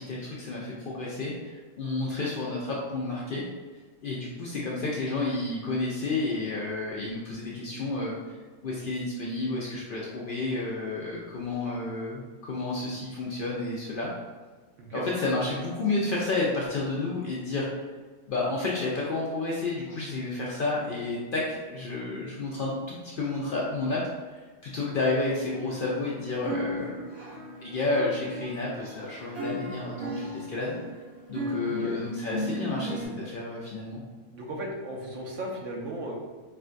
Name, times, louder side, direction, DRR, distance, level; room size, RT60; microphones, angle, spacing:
voice 1, 0.0-3.4 4.0-8.4 8.6-14.1 14.9-17.7 18.3-24.0 24.3-27.0 27.6-30.7 31.3-34.0, left 3 dB, 65° left, -4 dB, 0.5 m, -31 dB
sound 1, 25.1-26.1 26.4-33.1, equal, 45° right, 1.5 m, -36 dB
voice 2, 31.6-32.0 34.3-36.2, right 1 dB, 75° right, 0 dB, 1.0 m, -36 dB
4.4 x 2.2 x 2.5 m, 1.4 s
omnidirectional pair, 1.3 m